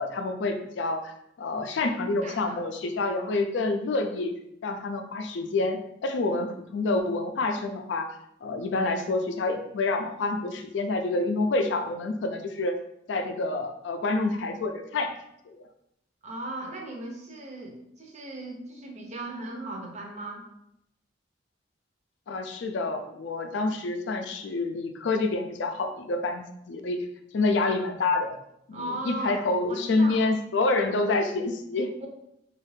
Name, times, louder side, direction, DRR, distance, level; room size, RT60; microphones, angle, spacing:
voice 1, 0.0-8.1 8.4-12.8 13.1-15.2 15.5-15.6 22.3-27.0 27.3-28.4 28.7-31.9, left 3 dB, 75° left, 6 dB, 0.4 m, -28 dB
voice 2, 2.2-2.6 3.2-3.3 16.2-20.5 28.7-30.3 30.9-31.0 32.0-32.1, right 1 dB, 40° right, 1 dB, 0.6 m, -38 dB
3.2 x 2.4 x 3.2 m, 0.79 s
head